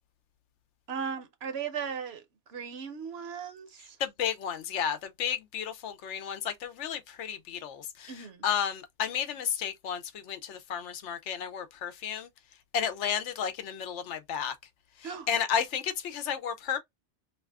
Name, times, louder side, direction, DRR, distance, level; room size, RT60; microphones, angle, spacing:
voice 1, 0.9-2.2 2.5-4.0 8.1-8.4 15.0-15.3, right 6 dB, 60° right, 0.9 m, -37 dB
voice 2, 4.0-12.3 12.7-14.5 15.3-16.8, left 8 dB, 70° left, 0.9 m, -32 dB
2.6 x 2.4 x 3.3 m
omnidirectional pair, 1.3 m